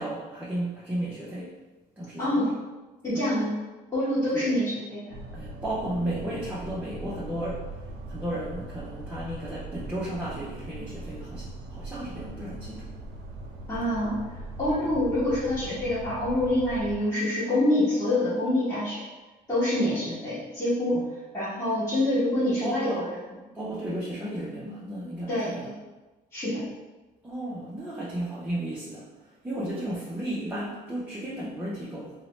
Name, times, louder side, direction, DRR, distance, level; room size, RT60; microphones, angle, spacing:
voice 1, 0.0-1.5 2.0-2.4 3.1-3.3 4.3-4.5 5.3-7.7 8.1-12.9 14.8-15.0 20.1-20.2 20.9-21.0 22.6-23.0 23.5-25.7 27.2-32.1, right 1 dB, 10° right, -7 dB, 0.4 m, -34 dB
voice 2, 2.2-2.5 3.0-3.5 3.9-5.2 13.7-14.1 14.6-19.0 19.5-21.0 21.3-23.1 25.3-25.7 26.3-26.6, left 1 dB, 15° left, -12 dB, 1.0 m, -26 dB
sound 1, 5.1-17.0, right 2 dB, 75° right, 0.5 m, -40 dB
2.8 x 2.0 x 2.9 m, 1.2 s
cardioid pair, 110°, 17 cm